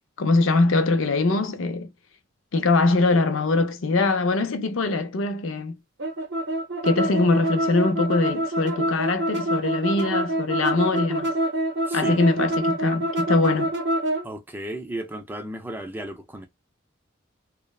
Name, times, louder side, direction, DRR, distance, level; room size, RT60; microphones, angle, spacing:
voice 1, 0.2-1.9 2.5-5.8 6.8-11.3 11.9-13.7, left 3 dB, 65° left, 0.5 m, -22 dB
sound 1, 6.0-14.2, right 1 dB, 55° right, 0.7 m, -25 dB
voice 2, 11.9-12.2 14.2-16.5, right 1 dB, 10° right, 0.4 m, -34 dB
3.1 x 2.0 x 2.3 m
head